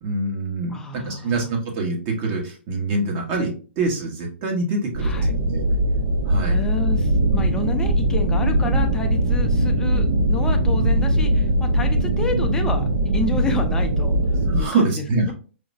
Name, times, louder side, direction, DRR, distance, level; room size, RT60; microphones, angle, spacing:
voice 1, 0.0-5.8 6.3-6.6 14.5-15.3, right 3 dB, 35° right, 1 dB, 1.2 m, -25 dB
voice 2, 0.7-1.5 5.0-5.3 6.5-12.9 13.1-14.2 14.5-15.3, left 4 dB, 10° left, 3 dB, 0.5 m, -30 dB
sound 1, 4.9-14.7, right 1 dB, 55° right, 0.6 m, -20 dB
4.9 x 2.1 x 2.6 m, 0.37 s
hypercardioid pair, 135°, 6 cm